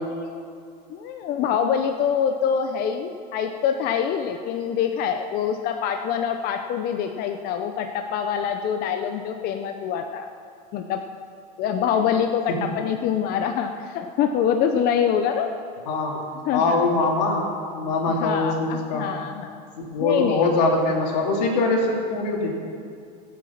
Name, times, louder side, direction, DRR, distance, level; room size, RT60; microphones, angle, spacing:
voice 1, 0.9-10.3 10.7-11.0 11.6-15.5 16.5-16.8 18.1-19.6 20.0-20.5, left 8 dB, 50° left, 5 dB, 0.9 m, -25 dB
voice 2, 15.9-16.3 16.5-19.1 19.9-22.5, left 3 dB, 85° left, -1 dB, 3.5 m, -23 dB
25.0 x 8.3 x 5.9 m, 2.4 s
supercardioid pair, 130°, 21 cm